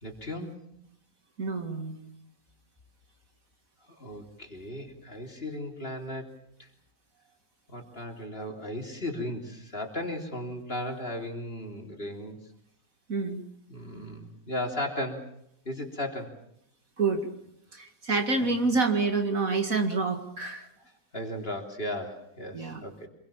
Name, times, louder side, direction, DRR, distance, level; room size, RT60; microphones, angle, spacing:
voice 1, 0.0-0.5 3.9-6.3 6.6-6.7 7.7-12.4 13.7-15.2 15.7-16.3 18.4-18.5 21.1-23.1, left 1 dB, 35° left, 2 dB, 3.6 m, -36 dB
voice 2, 1.4-2.0 13.1-13.4 17.0-17.3 17.7-20.7 22.5-22.8, right 3 dB, 50° right, 5 dB, 2.5 m, -27 dB
26.5 x 22.5 x 7.2 m, 0.73 s
omnidirectional pair, 1.8 m